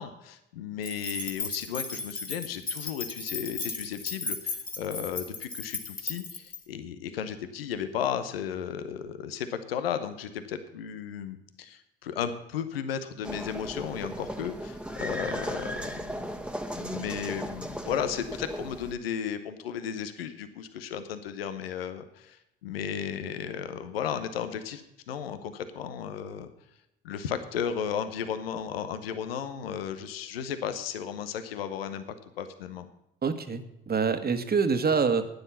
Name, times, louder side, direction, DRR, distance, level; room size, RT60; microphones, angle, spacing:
voice 1, 0.0-16.1 16.8-26.5 27.0-32.0 32.4-32.9, left 8 dB, 85° left, 11 dB, 1.0 m, -34 dB
sound 1, 0.8-6.6, left 4 dB, 30° left, 2.2 m, -36 dB
sound 2, 13.2-18.9, equal, 5° right, 1.4 m, -36 dB
voice 2, 33.2-35.3, right 5 dB, 35° right, 9 dB, 1.5 m, -26 dB
12.0 x 9.6 x 5.7 m, 0.86 s
hypercardioid pair, 55°, 29 cm